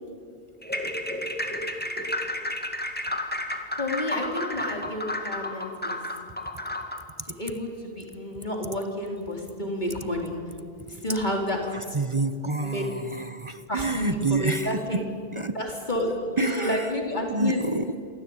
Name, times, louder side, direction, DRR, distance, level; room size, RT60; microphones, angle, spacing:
sound 1, 0.6-7.1, left 1 dB, 10° left, 2.0 m, -32 dB
voice 1, 3.8-6.0 7.4-10.3 10.9-11.6 12.6-12.8 13.7-15.0 15.5-16.1 16.4-17.6, left 1 dB, 45° left, 1 dB, 4.0 m, -30 dB
voice 2, 11.6-15.5 16.1-16.9 17.3-18.0, right 3 dB, 30° right, 11 dB, 1.0 m, -29 dB
27.5 x 23.5 x 8.8 m, 2.2 s
omnidirectional pair, 1.1 m